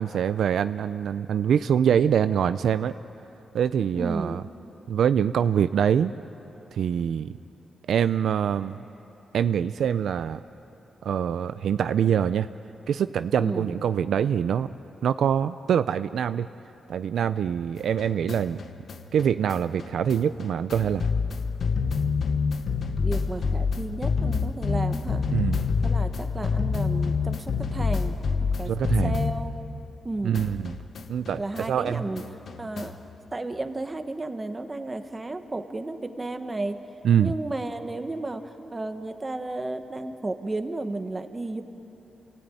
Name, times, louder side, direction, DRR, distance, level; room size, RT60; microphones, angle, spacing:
voice 1, 0.0-2.9 3.5-4.4 4.9-6.1 6.7-7.3 7.9-8.8 9.3-10.4 11.0-12.5 12.9-14.7 15.0-16.5 16.9-18.6 19.1-21.1 25.3-25.6 28.7-29.1 30.2-30.8 31.1-31.4 31.7-32.1 37.0-37.3, right 8 dB, 75° right, 12 dB, 0.4 m, -24 dB
voice 2, 4.0-4.4 13.4-13.8 23.0-25.2 25.8-28.2 28.6-28.7 29.0-29.6 30.0-30.4 31.4-32.2 32.6-33.0 33.3-36.8 37.2-41.6, right 2 dB, 20° right, 7 dB, 1.2 m, -33 dB
sound 1, 17.8-30.1 30.3-33.1, left 5 dB, 55° left, 1.0 m, -28 dB
28.0 x 16.5 x 9.2 m, 3.0 s
wide cardioid pair, 140°, 0 cm